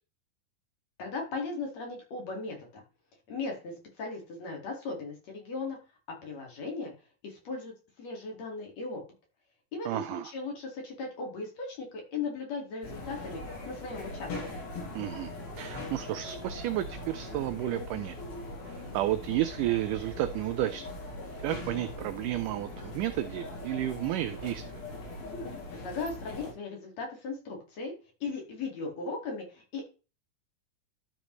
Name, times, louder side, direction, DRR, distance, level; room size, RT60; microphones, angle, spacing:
voice 1, 1.0-2.8 3.3-5.8 6.2-6.9 7.2-9.0 9.7-14.3 25.7-27.9 28.2-29.8, left 3 dB, 50° left, 2.9 m, -37 dB
voice 2, 9.9-10.3 15.0-18.2 18.7-20.9 21.4-24.8, right 14 dB, 85° right, 1.8 m, -32 dB
sound 1, 12.8-26.5, left 2 dB, 80° left, 4.3 m, -41 dB
12.5 x 5.2 x 3.1 m
omnidirectional pair, 4.2 m